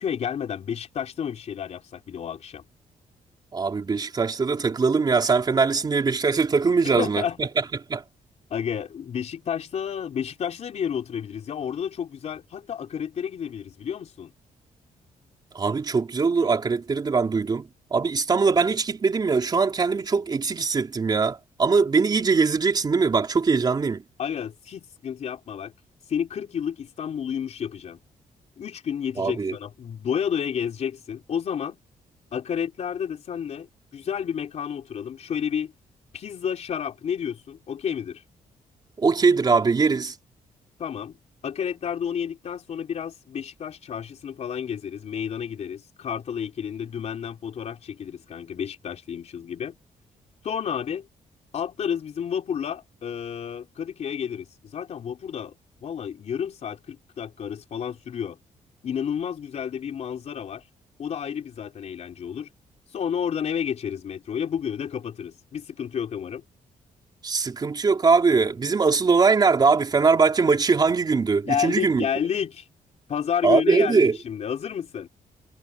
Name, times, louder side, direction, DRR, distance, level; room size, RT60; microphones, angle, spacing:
voice 1, 0.0-2.6 6.8-7.4 8.5-14.3 24.2-25.7 26.1-28.0 28.6-31.8 32.3-33.7 33.9-35.7 36.1-38.2 40.8-41.2 41.4-49.8 50.4-51.1 51.5-55.5 55.8-58.4 58.8-60.6 61.0-62.5 62.9-66.4 71.4-72.6 73.1-75.1, left 8 dB, 50° left, 3.8 m, -30 dB
voice 2, 3.5-7.5 7.9-8.0 15.5-24.0 29.2-29.5 39.0-40.1 67.2-72.0 73.4-74.2, right 4 dB, 30° right, 3.9 m, -21 dB
wide cardioid pair, 160°, 14 cm